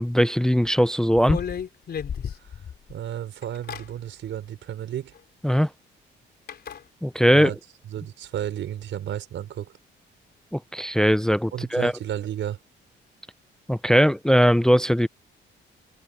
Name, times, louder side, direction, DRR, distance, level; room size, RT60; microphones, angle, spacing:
voice 1, 0.0-1.4 5.4-5.7 7.0-7.5 10.5-11.9 13.7-15.1, equal, 5° left, 0.6 m, -20 dB
sound 1, 1.1-2.9 3.4-3.9 5.2-5.3 6.5-6.8, left 8 dB, 55° left, 3.9 m, -32 dB
voice 2, 2.9-5.1 7.3-7.6 7.9-9.7 11.5-12.6, right 11 dB, 70° right, 4.8 m, -32 dB
open air
cardioid pair, 90°, 20 cm